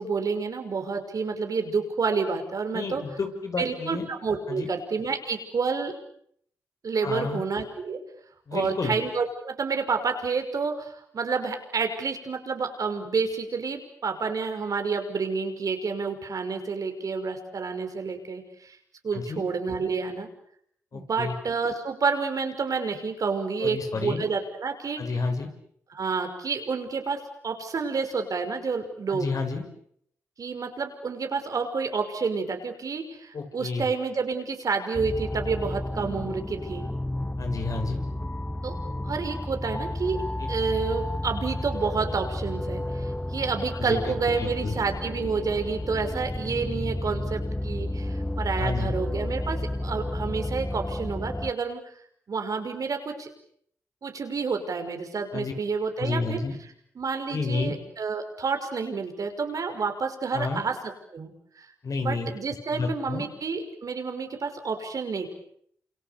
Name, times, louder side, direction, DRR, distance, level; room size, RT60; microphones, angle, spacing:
voice 1, 0.0-3.0 3.6-5.9 6.8-8.0 8.5-18.8 19.0-20.3 20.9-25.0 25.9-29.3 30.4-36.9 38.6-38.8 39.0-40.2 40.5-51.8 52.3-53.3 54.0-56.4 57.0-60.8 61.1-61.7 62.0-65.3, right 5 dB, 60° right, 6 dB, 5.8 m, -29 dB
voice 2, 2.7-4.0 4.5-4.7 7.0-7.4 8.5-8.9 19.1-19.4 20.9-21.3 23.6-24.2 25.0-25.5 29.1-29.6 33.3-33.9 37.4-38.0 43.8-44.1 44.4-44.7 48.6-49.0 55.3-55.5 56.0-56.6 57.3-57.7 60.3-60.6 61.8-62.3 62.7-63.3, left 4 dB, 60° left, 5 dB, 6.4 m, -30 dB
sound 1, 34.9-51.5, left 1 dB, 15° left, 1.4 m, -31 dB
29.0 x 27.5 x 7.0 m, 0.69 s
supercardioid pair, 45°, 7 cm